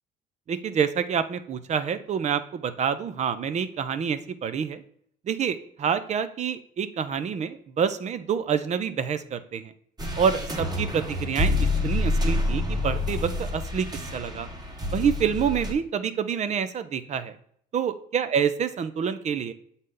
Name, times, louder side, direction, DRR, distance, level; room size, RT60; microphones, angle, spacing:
voice 1, 0.5-4.8 5.3-9.7 10.2-13.9 14.1-14.5 14.9-17.3 17.7-19.5, right 7 dB, 45° right, 12 dB, 0.6 m, -27 dB
sound 1, 10.0-15.7, left 2 dB, 25° right, 1.3 m, -27 dB
7.5 x 4.0 x 3.7 m, 0.64 s
cardioid pair, 110°, 17 cm